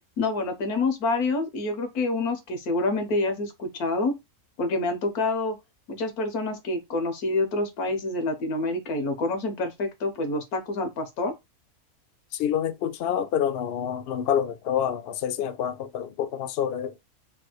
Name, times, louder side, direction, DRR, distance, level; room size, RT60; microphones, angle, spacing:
voice 1, 0.2-4.2 4.6-5.6 5.9-11.3, left 2 dB, 90° left, 1.4 m, -27 dB
voice 2, 12.3-16.9, left 9 dB, 75° left, 0.5 m, -27 dB
3.3 x 2.3 x 2.9 m
omnidirectional pair, 1.6 m